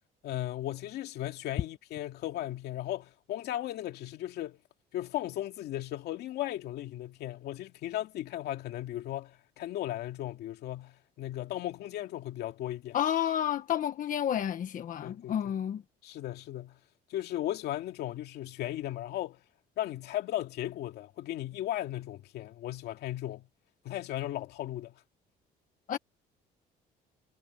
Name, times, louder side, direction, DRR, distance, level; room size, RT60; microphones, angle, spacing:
voice 1, 0.2-4.6 4.9-13.0 15.0-15.4 16.0-16.8 17.1-19.4 19.8-23.5 23.8-25.0, left 13 dB, 75° left, 2.4 m, -36 dB
voice 2, 12.9-15.8 25.9-26.0, left 10 dB, 50° left, 1.4 m, -30 dB
cardioid pair, 110°, 17 cm